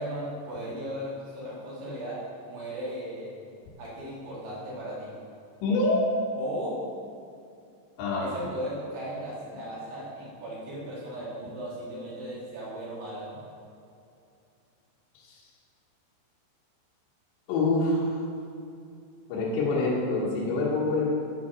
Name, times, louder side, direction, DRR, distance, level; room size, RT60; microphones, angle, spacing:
voice 1, 0.0-2.2 2.5-3.3 3.8-5.1 6.4-6.8 8.2-13.3, equal, 85° right, -7 dB, 5.2 m, -36 dB
voice 2, 5.6-6.1 8.0-8.3 15.2-15.4 17.5-18.2 19.3-21.2, left 2 dB, 75° left, -5 dB, 3.6 m, -26 dB
10.5 x 6.0 x 6.1 m, 2.5 s
omnidirectional pair, 5.2 m